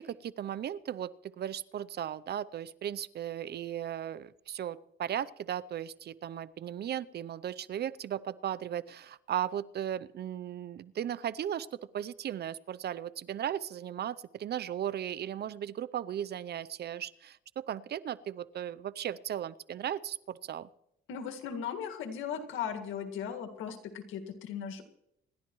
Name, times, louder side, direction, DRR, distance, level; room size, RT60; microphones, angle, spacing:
voice 1, 0.0-11.7 11.9-20.7, right 10 dB, 55° right, 18 dB, 0.6 m, -36 dB
voice 2, 21.1-24.8, left 7 dB, 90° left, 6 dB, 1.9 m, -37 dB
27.0 x 11.5 x 3.1 m, 0.81 s
cardioid pair, 90°, 20 cm